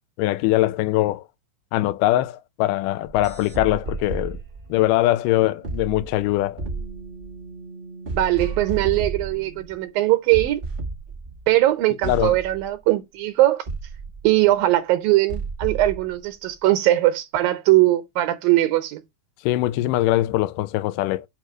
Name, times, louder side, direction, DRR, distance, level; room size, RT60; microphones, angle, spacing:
voice 1, 0.2-1.3 1.7-4.4 4.7-6.6 12.0-12.4 19.4-21.3, left 16 dB, 80° left, 2.0 m, -22 dB
sound 1, 3.1-9.8 10.3-11.6 12.0-12.7 13.6-14.5 15.3-16.1 16.6-16.7, right 4 dB, 45° right, 0.7 m, -33 dB
voice 2, 8.1-10.6 11.5-13.6 14.2-19.0, right 16 dB, 75° right, 2.4 m, -20 dB
9.1 x 3.1 x 6.2 m
omnidirectional pair, 4.3 m